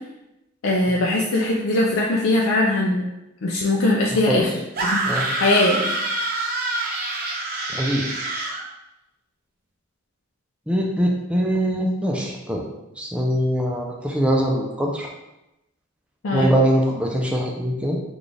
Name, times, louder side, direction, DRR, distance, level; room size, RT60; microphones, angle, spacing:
voice 1, 0.6-3.0 3.4-4.5 4.8-5.0 5.4-5.9 16.2-16.5, left 2 dB, 80° left, -2 dB, 0.4 m, -20 dB
sound 1, 4.8-8.6, right 2 dB, 50° right, 0.6 m, -26 dB
voice 2, 7.7-8.3 10.7-12.6 13.0-15.1 16.3-18.0, equal, 5° right, -1 dB, 0.5 m, -22 dB
4.0 x 2.4 x 3.3 m, 0.93 s
head